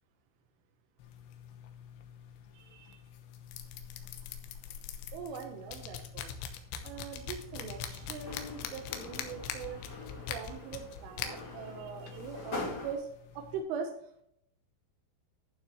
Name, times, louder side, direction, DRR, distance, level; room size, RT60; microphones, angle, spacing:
sound 1, 1.0-13.6, left 8 dB, 75° left, 3.0 m, -44 dB
voice 1, 2.5-3.0 5.1-6.4 6.8-9.8 10.3-13.1 13.4-13.9, right 6 dB, 80° right, 3 dB, 3.5 m, -41 dB
sound 2, 6.8-11.8, left 3 dB, 40° left, 3.7 m, -60 dB
sound 3, 7.5-12.9, left 2 dB, 20° left, 4.0 m, -44 dB
12.0 x 7.2 x 3.2 m, 0.71 s
omnidirectional pair, 5.8 m